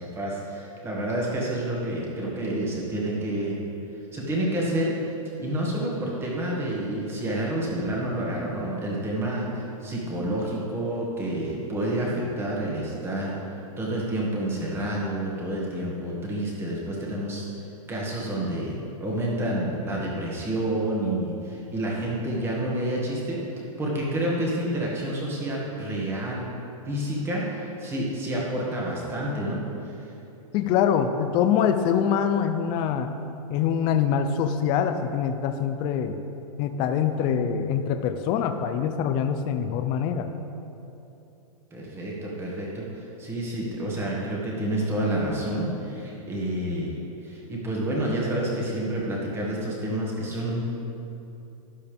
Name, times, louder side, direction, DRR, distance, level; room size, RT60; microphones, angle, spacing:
voice 1, 0.0-3.6 4.1-4.9 5.4-13.4 13.8-17.5 17.9-18.8 19.0-23.4 23.8-26.5 26.9-29.6 29.8-30.0 41.7-46.9 47.2-50.6, right 1 dB, 15° right, -4 dB, 1.9 m, -29 dB
voice 2, 30.5-33.1 33.5-36.2 36.6-40.3, left 8 dB, 25° left, 7 dB, 0.4 m, -24 dB
12.0 x 10.5 x 3.5 m, 2.8 s
hypercardioid pair, 155°, 18 cm